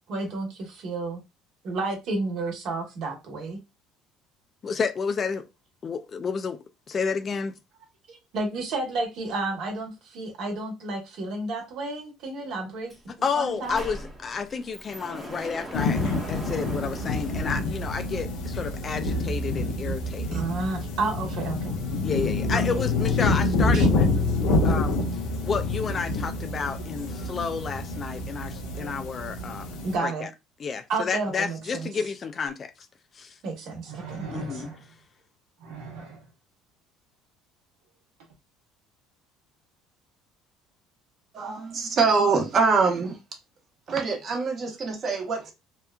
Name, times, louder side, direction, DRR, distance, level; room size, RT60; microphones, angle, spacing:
voice 1, 0.1-1.2 1.6-3.6 8.1-13.8 20.3-21.7 22.5-22.8 23.7-23.9 29.8-30.3 30.9-31.9 33.4-33.7 34.4-34.6, right 3 dB, 65° right, 1.1 m, -31 dB
voice 2, 4.6-5.5 5.8-6.6 6.9-7.6 13.1-16.0 16.3-20.4 22.0-24.1 24.4-25.0 25.4-29.7 30.0-30.3 30.6-32.7 33.2-33.4 34.3-34.7, left 5 dB, 40° left, 0.3 m, -30 dB
Sliding door, 12.9-13.0 13.3-18.3, right 1 dB, 15° right, 0.9 m, -40 dB
sound 1, 15.7-30.0, left 2 dB, 75° left, 0.6 m, -27 dB
sound 2, 32.5-32.6 33.8-35.0 35.6-36.3 38.2-38.3, right 5 dB, 80° right, 0.9 m, -39 dB
voice 3, 41.3-43.2 43.9-45.5, right 4 dB, 45° right, 1.0 m, -24 dB
2.9 x 2.2 x 2.3 m
supercardioid pair, 90°, 0 cm